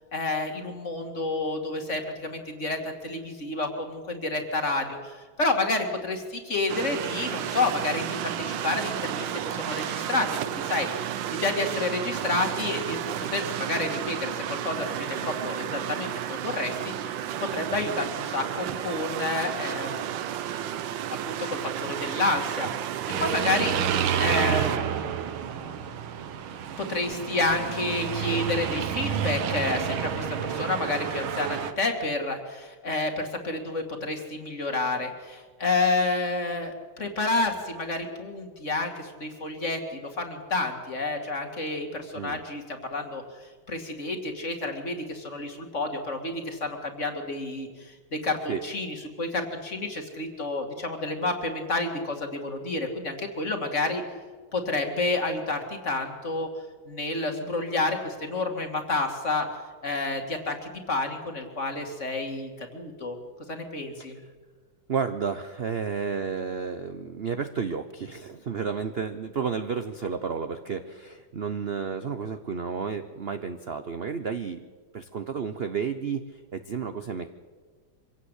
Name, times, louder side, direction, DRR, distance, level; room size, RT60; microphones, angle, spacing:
voice 1, 0.1-13.0 13.3-17.2 17.5-20.2 21.1-22.7 23.2-25.9 26.8-54.0 54.5-56.5 56.9-59.5 59.8-63.2 63.5-64.2, left 2 dB, 35° left, 5 dB, 2.5 m, -30 dB
sound 1, 6.7-24.8, right 10 dB, 70° right, 1.5 m, -32 dB
sound 2, 23.1-31.7, right 8 dB, 85° right, 1.9 m, -29 dB
voice 2, 64.9-74.7 74.9-77.4, right 6 dB, 55° right, 9 dB, 0.7 m, -32 dB
24.5 x 16.5 x 8.2 m, 1.5 s
omnidirectional pair, 2.2 m